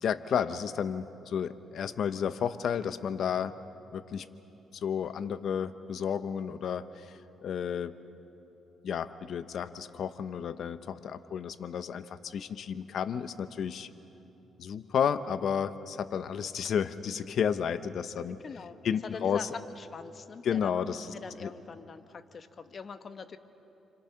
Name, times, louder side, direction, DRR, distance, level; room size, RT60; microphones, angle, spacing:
voice 1, 0.0-3.5 3.9-4.3 4.7-8.0 8.8-13.9 14.6-18.4 18.8-19.5 20.4-21.1 21.4-21.5, left 7 dB, 65° left, 12 dB, 1.0 m, -32 dB
voice 2, 18.3-20.7 21.1-23.4, left 5 dB, 45° left, 9 dB, 1.3 m, -43 dB
30.0 x 25.5 x 5.9 m, 3.0 s
cardioid pair, 90°, 0 cm